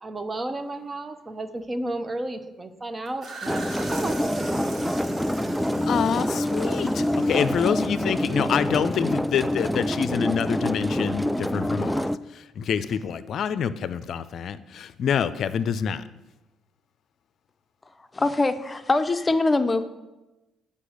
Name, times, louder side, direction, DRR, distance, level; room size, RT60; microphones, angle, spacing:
voice 1, 0.0-5.1 5.5-5.7 7.6-7.7, right 2 dB, 30° right, 10 dB, 0.9 m, -33 dB
sound 1, 3.1-8.6, right 3 dB, 55° right, 3.3 m, -41 dB
sound 2, 3.5-12.2, equal, ahead, 0.3 m, -26 dB
voice 2, 5.9-11.9 12.6-16.0, left 8 dB, 65° left, 14 dB, 0.5 m, -26 dB
voice 3, 18.1-19.8, left 2 dB, 25° left, 10 dB, 0.7 m, -23 dB
8.4 x 5.3 x 6.4 m, 1.1 s
supercardioid pair, 60°, 0 cm